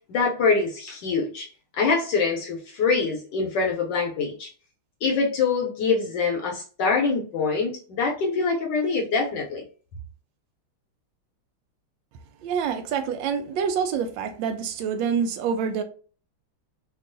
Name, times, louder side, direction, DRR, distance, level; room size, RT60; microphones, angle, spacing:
voice 1, 0.1-1.5 1.8-4.5 5.0-9.6, left 4 dB, 70° left, 1.2 m, -24 dB
voice 2, 12.4-15.8, right 6 dB, 75° right, 1.2 m, -26 dB
3.6 x 2.3 x 2.5 m
omnidirectional pair, 2.3 m